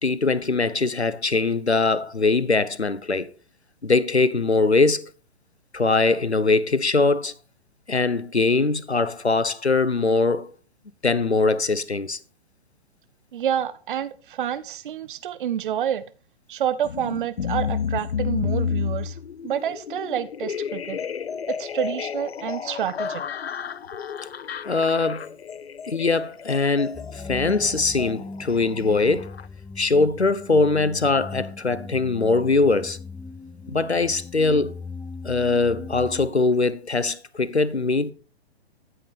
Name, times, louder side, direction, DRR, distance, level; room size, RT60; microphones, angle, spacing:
voice 1, 0.0-3.3 3.8-5.0 5.7-7.3 7.9-10.5 11.0-12.2 24.6-25.3 25.9-29.3 29.8-33.0 33.7-34.7 35.2-38.1, left 3 dB, 90° left, 1.1 m, -22 dB
voice 2, 13.3-16.0 16.5-19.2 19.4-21.0 21.5-23.2, right 10 dB, 50° right, 0.8 m, -28 dB
sound 1, 16.8-29.5, left 6 dB, 70° left, 0.7 m, -31 dB
sound 2, 26.9-36.3, left 3 dB, 5° left, 1.2 m, -39 dB
13.5 x 8.0 x 5.1 m
figure-of-eight pair, 120°, 32 cm